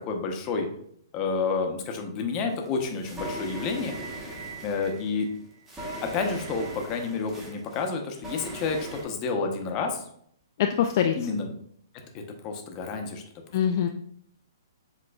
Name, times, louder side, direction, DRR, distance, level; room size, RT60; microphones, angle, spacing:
voice 1, 0.1-0.7 1.1-3.9 4.6-5.3 6.0-10.0 11.1-11.5 12.4-13.2, left 4 dB, 30° left, 3 dB, 0.8 m, -29 dB
sound 1, 2.3-9.0, right 1 dB, 15° right, 1.2 m, -39 dB
voice 2, 10.6-11.1 13.5-13.9, left 9 dB, 50° left, 4 dB, 0.3 m, -23 dB
7.6 x 3.0 x 2.3 m, 0.68 s
hypercardioid pair, 145°, 2 cm